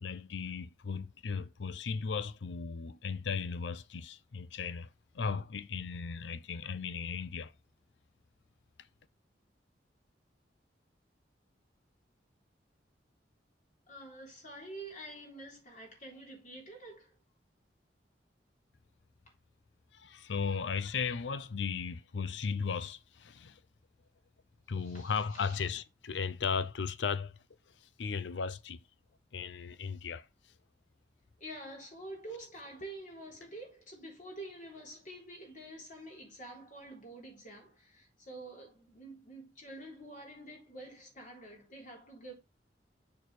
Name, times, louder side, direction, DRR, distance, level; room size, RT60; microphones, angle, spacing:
voice 1, 0.0-4.9 5.1-7.5 19.9-23.6 24.7-27.4 27.8-28.8 29.3-30.3, left 5 dB, 85° left, 0.5 m, -36 dB
voice 2, 13.9-17.1 24.8-25.6 31.4-42.3, right 1 dB, 45° left, 3.7 m, -48 dB
6.8 x 6.1 x 3.2 m
head